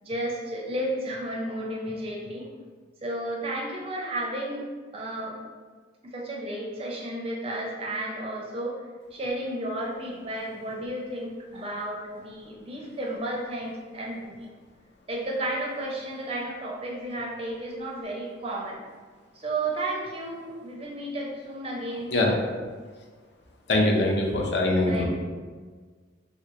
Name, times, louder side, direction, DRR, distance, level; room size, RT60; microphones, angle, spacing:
voice 1, 0.0-2.5 3.0-5.4 6.0-8.8 9.1-14.5 15.1-18.8 19.3-22.2 24.8-25.1, right 1 dB, 30° right, -2 dB, 0.4 m, -33 dB
voice 2, 23.7-25.1, left 2 dB, 60° left, -1 dB, 0.5 m, -22 dB
3.0 x 2.1 x 3.6 m, 1.5 s
head